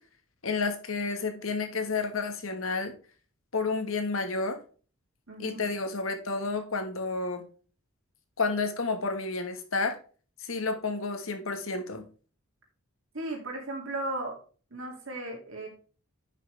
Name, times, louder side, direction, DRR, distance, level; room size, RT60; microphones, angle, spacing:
voice 1, 0.4-2.9 3.5-4.6 5.4-7.4 8.4-9.9 10.4-12.1, left 4 dB, 85° left, 6 dB, 1.5 m, -30 dB
voice 2, 5.3-5.6 13.1-14.4 14.7-15.7, right 2 dB, 75° right, 0 dB, 2.6 m, -35 dB
10.5 x 6.0 x 3.4 m, 0.39 s
head